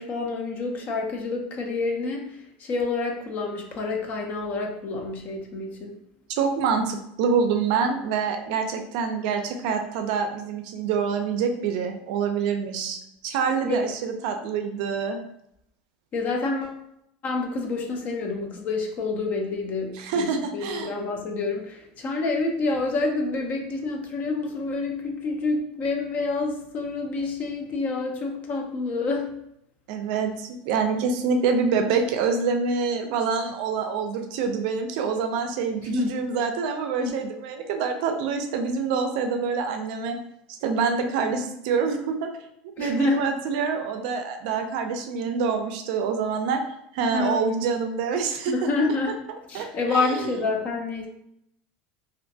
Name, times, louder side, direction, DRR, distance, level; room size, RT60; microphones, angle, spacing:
voice 1, 0.0-6.0 13.6-13.8 16.1-16.8 17.2-29.3 35.8-36.2 37.0-37.2 42.8-43.2 47.1-47.4 48.5-49.2 49.5-51.1, left 3 dB, 35° left, 2 dB, 0.4 m, -28 dB
voice 2, 6.3-13.0 13.2-15.2 20.0-20.9 29.9-40.2 40.6-42.3 42.8-46.6 46.9-48.5 49.5-50.4, right 5 dB, 65° right, 5 dB, 0.4 m, -26 dB
2.4 x 2.2 x 2.6 m, 0.78 s
supercardioid pair, 145°, 5 cm